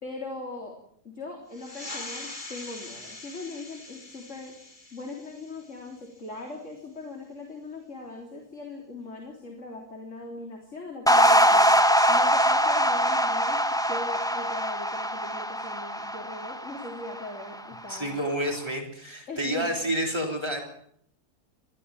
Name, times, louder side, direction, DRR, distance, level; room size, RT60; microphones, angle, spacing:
voice 1, 0.0-0.8 1.0-4.5 4.9-11.7 12.1-18.2 19.3-19.7, left 2 dB, 50° left, 1 dB, 4.0 m, -40 dB
sound 1, 1.5-6.6, left 2 dB, 30° left, 2.3 m, -43 dB
sound 2, 11.1-17.5, equal, 5° left, 0.9 m, -22 dB
voice 2, 17.9-20.6, right 1 dB, 15° right, 2 dB, 4.5 m, -29 dB
20.5 x 14.5 x 8.9 m, 0.67 s
omnidirectional pair, 1.7 m